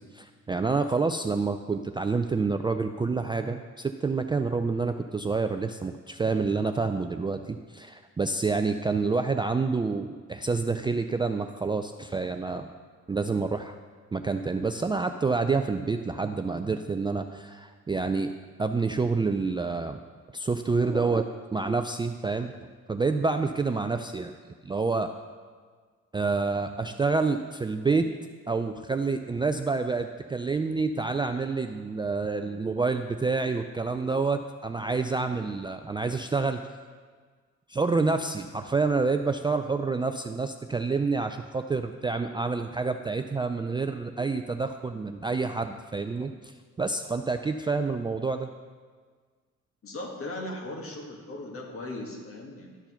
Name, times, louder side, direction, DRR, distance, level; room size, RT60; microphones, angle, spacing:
voice 1, 0.0-12.6 13.1-13.8 14.1-18.3 18.6-20.0 20.3-21.3 21.5-22.5 22.9-24.3 24.6-25.1 26.1-28.1 28.5-36.6 37.7-48.5, right 4 dB, 15° right, 6 dB, 0.3 m, -28 dB
voice 2, 49.8-52.8, left 2 dB, 45° left, 1 dB, 1.8 m, -38 dB
12.0 x 4.5 x 5.7 m, 1.5 s
cardioid pair, 90°, 30 cm